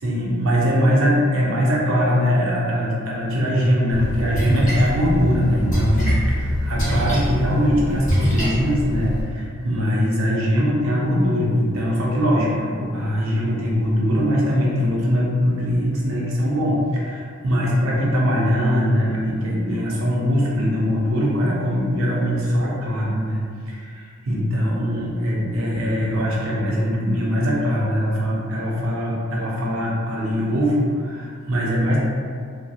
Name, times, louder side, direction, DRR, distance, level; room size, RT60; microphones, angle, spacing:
voice 1, 0.0-32.0, equal, 75° right, -5 dB, 0.6 m, -21 dB
Splash splatter, 3.9-9.2, equal, 35° left, 0.9 m, -23 dB
2.3 x 2.1 x 2.7 m, 2.1 s
head